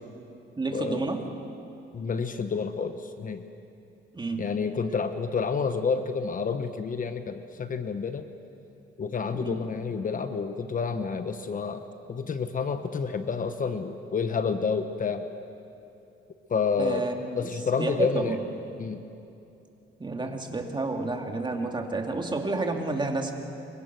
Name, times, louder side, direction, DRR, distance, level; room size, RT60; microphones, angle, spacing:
voice 1, 0.6-1.3 4.1-4.5 9.3-9.6 16.8-18.5 20.0-23.3, right 3 dB, 25° right, 3 dB, 2.7 m, -30 dB
voice 2, 1.9-3.4 4.4-8.3 9.0-11.8 12.1-15.3 16.5-17.1 17.3-18.4 18.8-19.0 20.2-20.3, left 5 dB, 45° left, 9 dB, 1.2 m, -29 dB
27.5 x 23.0 x 6.2 m, 2.8 s
cardioid pair, 90°, 20 cm